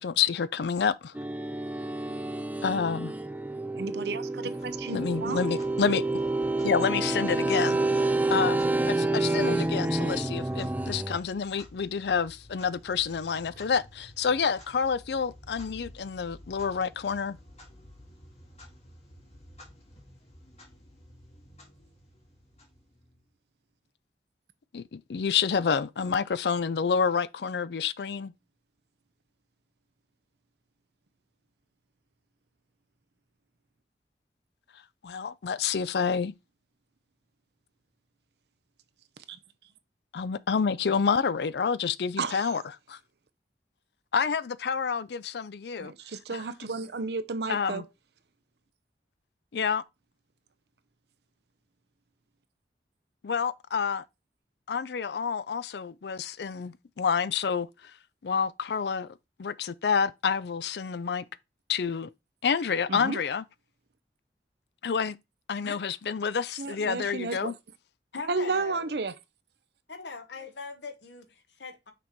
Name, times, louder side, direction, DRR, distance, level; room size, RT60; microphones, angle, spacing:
voice 1, 0.0-1.1 2.6-3.1 4.9-6.0 6.6-17.4 24.7-28.3 35.0-36.3 40.1-43.0 44.1-45.9 46.3-46.4 47.5-47.8 49.5-49.8 53.2-54.0 54.7-57.7 58.2-59.1 59.4-61.3 61.7-62.1 62.4-63.4 64.8-65.2 65.5-67.5, left 6 dB, 70° left, 0.4 m, -28 dB
sound 1, 1.2-11.2, right 2 dB, 10° right, 0.3 m, -28 dB
voice 2, 3.8-5.4 39.3-39.4 42.2-42.5 45.8-47.8 62.9-63.2 66.6-67.5 68.3-69.1, right 3 dB, 70° right, 0.7 m, -32 dB
Clock, 4.5-23.3, left 1 dB, 35° left, 2.0 m, -52 dB
voice 3, 65.6-66.0 68.1-68.9 69.9-71.9, left 4 dB, 85° left, 1.2 m, -41 dB
6.0 x 4.3 x 4.6 m
head